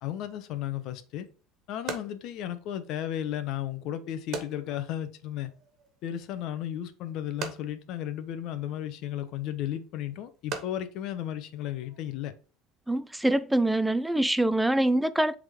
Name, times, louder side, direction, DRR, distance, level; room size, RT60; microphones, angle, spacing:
voice 1, 0.0-1.3 1.7-5.5 6.0-12.3, left 11 dB, 60° left, 0.9 m, -34 dB
sound 1, 0.8-12.2, right 5 dB, 50° right, 1.6 m, -44 dB
voice 2, 12.9-15.4, right 1 dB, 5° right, 0.4 m, -24 dB
7.9 x 3.8 x 3.6 m
cardioid pair, 140°, 0 cm